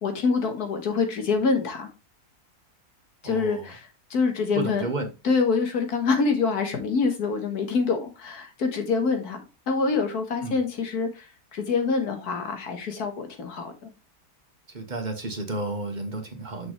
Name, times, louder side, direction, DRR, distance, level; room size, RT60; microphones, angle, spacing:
voice 1, 0.0-1.9 3.2-4.8 5.2-9.4 9.7-11.2 11.5-13.9, left 4 dB, 75° left, 1.9 m, -25 dB
voice 2, 3.2-3.7 4.5-5.1 10.4-10.6 14.7-16.7, right 2 dB, 30° right, 1.2 m, -32 dB
6.2 x 6.1 x 3.2 m
omnidirectional pair, 1.6 m